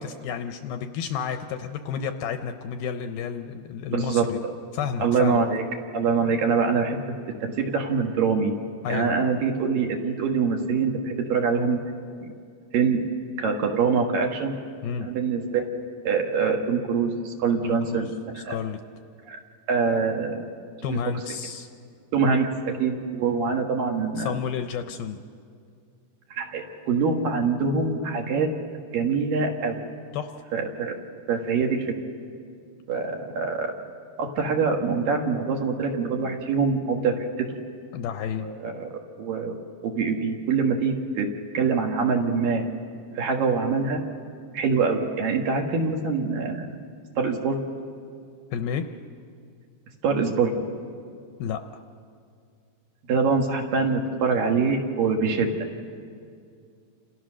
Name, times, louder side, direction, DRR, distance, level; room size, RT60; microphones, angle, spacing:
voice 1, 0.0-4.4 4.7-5.4 8.8-9.2 14.8-15.1 17.6-18.1 18.5-18.8 20.8-21.7 24.2-25.2 30.1-30.3 36.2-36.3 37.9-38.5 48.5-48.8 51.4-51.8, left 7 dB, 75° left, 7 dB, 2.4 m, -31 dB
voice 2, 3.9-4.5 5.0-5.6 5.9-7.0 7.4-8.5 8.9-11.8 12.2-12.3 12.7-13.0 13.4-14.5 15.0-15.6 16.0-18.6 19.3-19.4 19.7-20.5 20.9-21.0 22.1-24.4 26.3-28.5 28.9-29.8 30.5-31.0 31.3-31.9 32.9-33.7 34.2-37.6 38.4-39.6 39.8-41.3 41.5-42.6 43.1-44.0 44.5-46.8 47.2-47.6 50.0-50.6 53.1-55.6, right 5 dB, 60° right, 2 dB, 3.2 m, -24 dB
29.5 x 27.5 x 6.4 m, 2.3 s
omnidirectional pair, 4.9 m